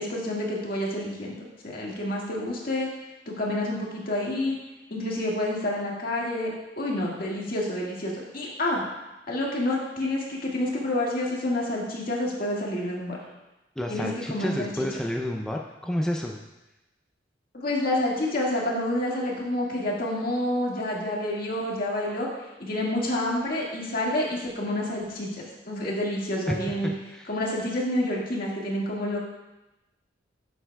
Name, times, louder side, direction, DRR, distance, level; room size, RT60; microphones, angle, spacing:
voice 1, 0.0-2.9 3.2-4.6 4.9-8.8 9.3-13.2 13.9-14.7 17.5-22.3 22.6-26.9 27.3-29.2, left 1 dB, 55° left, -3 dB, 1.8 m, -28 dB
voice 2, 13.8-16.4 26.5-27.4, left 1 dB, 5° left, 0 dB, 0.4 m, -30 dB
10.5 x 7.8 x 2.3 m, 1.0 s
head